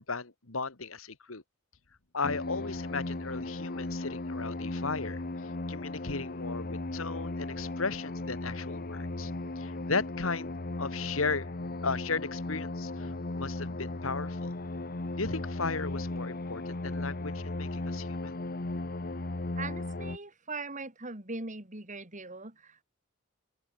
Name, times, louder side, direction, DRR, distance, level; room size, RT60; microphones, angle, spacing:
voice 1, 0.0-1.4 2.1-5.2 5.7-9.3 9.6-10.5 10.8-11.5 11.8-14.5 15.2-18.3, left 4 dB, 80° left, 2.0 m, -35 dB
sound 1, 2.2-20.2, left 2 dB, 45° left, 1.2 m, -36 dB
voice 2, 19.5-22.8, right 3 dB, 40° right, 5.0 m, -40 dB
open air
head